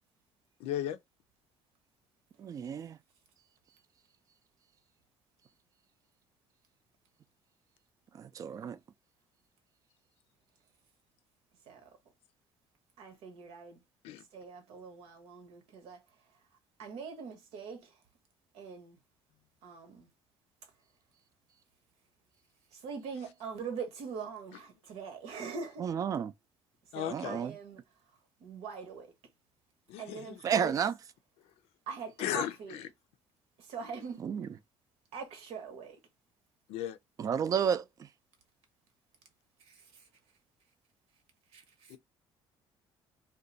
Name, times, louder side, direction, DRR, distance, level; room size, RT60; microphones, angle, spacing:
voice 1, 0.6-1.0 14.0-14.2 26.9-27.4 29.9-30.5 32.2-32.9 36.7-37.0 41.9-42.0, left 11 dB, 90° left, 0.5 m, -36 dB
voice 2, 2.4-3.0 8.1-8.8 25.8-26.3 27.1-27.5 30.4-30.9 34.2-34.5 37.2-38.1, right 7 dB, 35° right, 0.4 m, -31 dB
voice 3, 13.0-13.8 14.3-16.0 16.8-17.9 18.5-19.0 19.6-20.1 22.7-25.9 26.9-27.8 28.4-29.1 30.0-30.7 31.9-32.8 33.6-34.2 35.1-36.0 39.7-40.0 41.5-41.9, right 5 dB, 85° right, 1.0 m, -42 dB
2.5 x 2.3 x 3.9 m
cardioid pair, 135°, 10 cm